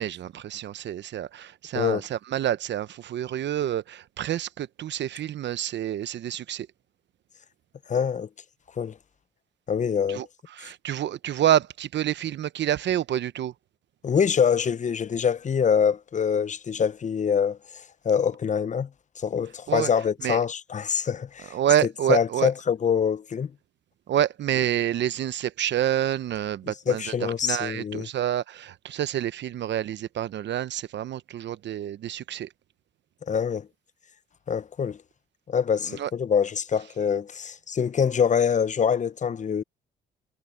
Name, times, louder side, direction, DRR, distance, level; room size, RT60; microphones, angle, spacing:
voice 1, 0.0-6.7 10.1-10.3 10.5-13.5 19.7-19.9 20.2-20.4 21.5-22.5 24.1-32.5 35.9-36.1, right 11 dB, 60° right, 0.9 m, -28 dB
voice 2, 7.9-8.3 8.8-8.9 9.7-10.3 14.0-17.6 18.0-18.9 19.2-21.5 22.1-23.5 26.9-28.1 33.3-33.7 34.5-35.0 35.5-39.6, left 7 dB, 35° left, 0.8 m, -24 dB
supercardioid pair, 70°, 20 cm